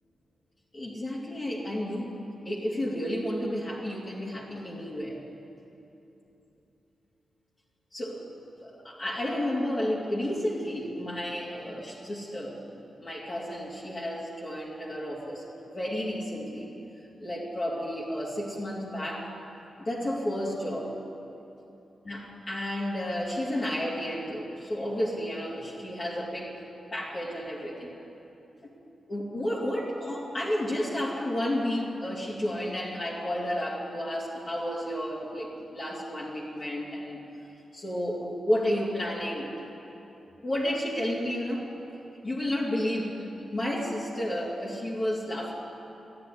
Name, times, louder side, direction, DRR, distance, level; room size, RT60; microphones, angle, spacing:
voice 1, 0.7-2.1 2.4-5.2 7.9-8.2 8.6-16.7 17.0-19.3 19.8-20.9 22.0-26.5 26.9-27.9 29.1-37.3 37.7-39.5 40.4-41.7 42.2-45.5, left 1 dB, 40° left, -8 dB, 3.1 m, -32 dB
13.5 x 9.8 x 9.8 m, 2.9 s
cardioid pair, 55°, 0 cm